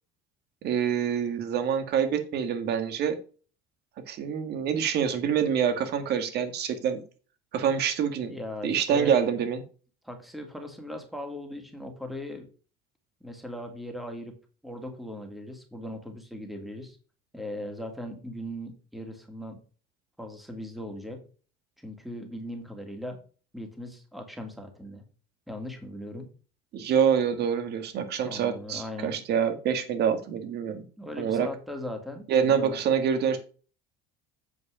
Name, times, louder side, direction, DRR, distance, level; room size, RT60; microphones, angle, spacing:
voice 1, 0.6-3.2 4.1-7.0 7.5-8.4 8.6-9.6 26.7-30.8 31.2-31.5 32.3-33.4, right 8 dB, 55° right, 9 dB, 1.8 m, -26 dB
voice 2, 8.2-9.1 10.0-12.5 13.2-14.3 14.6-17.0 17.3-19.6 20.2-21.3 21.8-23.2 23.5-25.0 25.5-26.3 28.2-29.2 31.0-32.8, left 1 dB, ahead, 4 dB, 2.3 m, -39 dB
8.3 x 5.0 x 5.1 m, 0.37 s
supercardioid pair, 105°, 20 cm